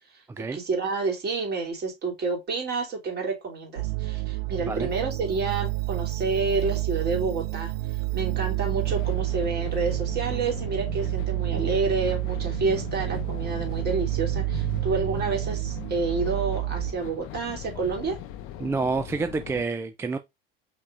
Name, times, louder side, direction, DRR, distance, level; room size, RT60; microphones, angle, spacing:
voice 1, 0.5-7.7 8.1-18.2, right 4 dB, 35° right, 2.8 m, -29 dB
sound 1, 3.8-16.9, right 20 dB, 75° right, 0.7 m, -29 dB
sound 2, 8.8-19.6, left 11 dB, 45° left, 0.7 m, -39 dB
voice 2, 18.6-20.2, right 4 dB, 10° right, 0.3 m, -28 dB
5.3 x 3.7 x 2.5 m
hypercardioid pair, 80°, 30 cm